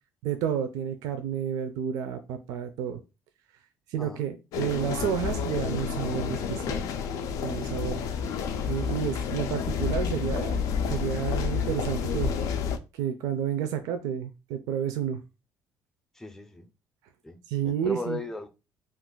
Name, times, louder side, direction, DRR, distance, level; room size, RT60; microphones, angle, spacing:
voice 1, 0.2-3.0 3.9-6.9 7.4-8.0 8.7-12.3 12.9-15.2 17.5-18.2, right 9 dB, 85° right, 0.4 m, -30 dB
sound 1, 4.5-12.8, left 6 dB, 70° left, 0.4 m, -30 dB
voice 2, 16.1-16.7 17.2-17.4 17.6-18.5, left 2 dB, 5° left, 0.4 m, -37 dB
2.4 x 2.3 x 3.7 m
cardioid pair, 125°, 6 cm